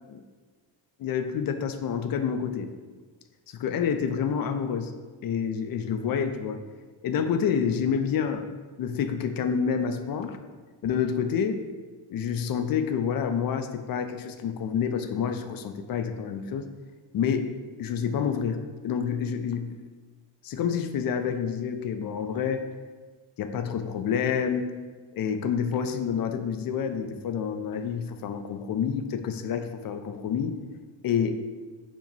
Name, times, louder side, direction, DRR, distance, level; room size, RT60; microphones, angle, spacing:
voice 1, 1.0-2.7 3.5-4.9 5.2-6.6 7.0-8.5 8.8-10.4 10.8-11.6 12.1-16.7 17.1-17.5 17.8-19.8 20.4-22.7 23.4-24.7 25.1-30.6 31.0-31.4, left 7 dB, 50° left, 8 dB, 0.5 m, -28 dB
6.0 x 2.2 x 4.0 m, 1.4 s
cardioid pair, 85°, 47 cm